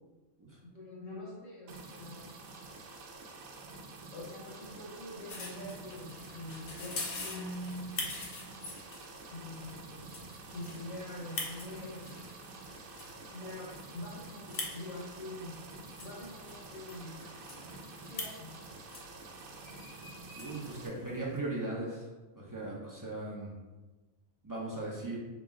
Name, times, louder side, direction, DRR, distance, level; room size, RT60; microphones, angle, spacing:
voice 1, 0.7-2.4 4.1-6.9 7.2-8.1 9.3-10.1 10.5-12.3 13.3-15.5 16.0-17.2 18.1-18.5, left 1 dB, 70° left, -8 dB, 1.6 m, -45 dB
sound 1, 1.7-20.9, right 3 dB, 80° right, 1.0 m, -49 dB
sound 2, 5.3-21.4, left 2 dB, 50° left, 0.7 m, -44 dB
voice 2, 20.4-22.1 22.4-23.5 24.4-25.2, right 2 dB, 25° right, -6 dB, 0.4 m, -38 dB
4.9 x 2.0 x 3.6 m, 1.2 s
omnidirectional pair, 1.5 m